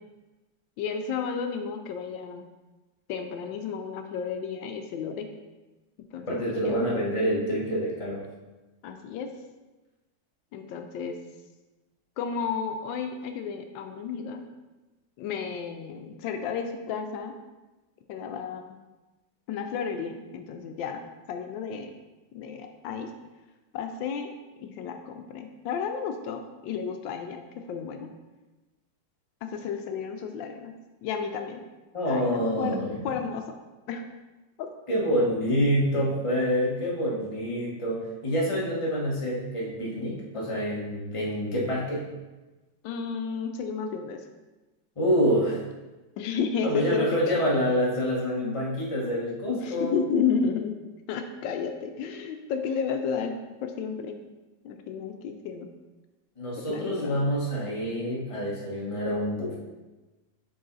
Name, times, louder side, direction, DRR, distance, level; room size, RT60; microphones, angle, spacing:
voice 1, 0.8-2.4 3.1-5.3 6.1-6.4 6.6-6.8 8.8-9.3 10.5-11.2 12.2-14.4 15.2-17.3 18.1-18.7 19.5-21.0 21.3-21.9 22.3-23.1 23.7-24.3 24.6-28.1 29.4-30.7 31.0-31.6 32.1-32.8 33.0-33.6 33.9-34.0 34.6-34.7 42.8-44.3 46.2-47.4 48.4-48.5 49.5-50.7 51.1-53.4 53.6-54.2 54.6-55.7 56.7-57.2, left 6 dB, 80° left, 6 dB, 1.3 m, -32 dB
voice 2, 6.3-8.2 31.9-33.1 34.9-42.1 45.0-45.6 46.6-49.9 56.4-59.5, equal, 20° left, -5 dB, 1.1 m, -27 dB
6.6 x 3.9 x 3.9 m, 1.1 s
omnidirectional pair, 2.0 m